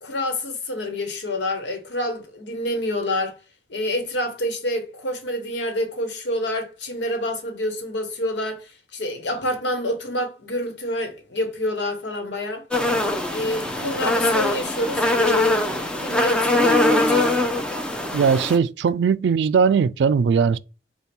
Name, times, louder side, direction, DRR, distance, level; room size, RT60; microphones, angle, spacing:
voice 1, 0.0-3.4 3.7-12.7 13.3-15.7 16.0-17.3, left 1 dB, 80° left, 1.1 m, -27 dB
sound 1, 12.7-18.6, left 1 dB, 5° left, 0.6 m, -22 dB
voice 2, 18.1-20.6, right 6 dB, 75° right, 0.3 m, -19 dB
5.3 x 2.3 x 4.3 m
head